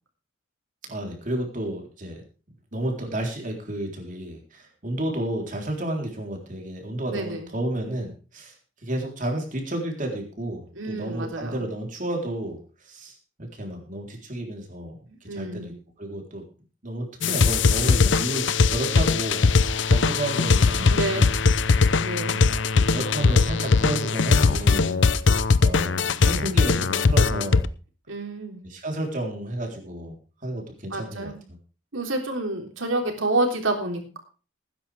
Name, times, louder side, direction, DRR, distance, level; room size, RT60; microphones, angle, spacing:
voice 1, 0.8-2.2 2.7-8.5 8.8-12.6 12.8-14.9 15.2-15.7 16.0-16.4 16.8-19.5 19.9-21.3 21.7-27.7 28.6-30.1 30.4-31.3, right 1 dB, 40° right, 1 dB, 3.8 m, -32 dB
voice 2, 7.1-7.5 10.8-11.6 15.1-15.8 20.8-21.3 21.9-22.4 28.1-28.6 30.9-31.4 31.9-34.2, right 2 dB, 90° right, 3 dB, 3.4 m, -29 dB
sound 1, 17.2-27.7, left 4 dB, 65° left, 0.6 m, -20 dB
19.0 x 10.0 x 3.5 m, 0.37 s
head